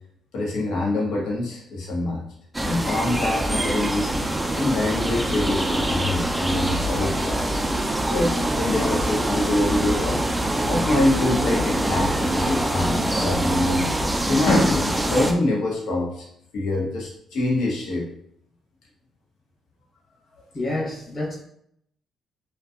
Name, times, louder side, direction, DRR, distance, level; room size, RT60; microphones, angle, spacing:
voice 1, 0.3-2.2 2.6-4.1 4.6-7.4 8.1-10.2 10.7-13.9 14.3-16.2 16.5-18.1, left 1 dB, 80° left, -2 dB, 0.7 m, -24 dB
sound 1, 2.5-15.3, right 1 dB, 10° right, 0.3 m, -24 dB
voice 2, 20.5-21.3, left 2 dB, 35° left, -4 dB, 0.9 m, -28 dB
2.5 x 2.2 x 2.4 m, 0.70 s
cardioid pair, 90°, 0 cm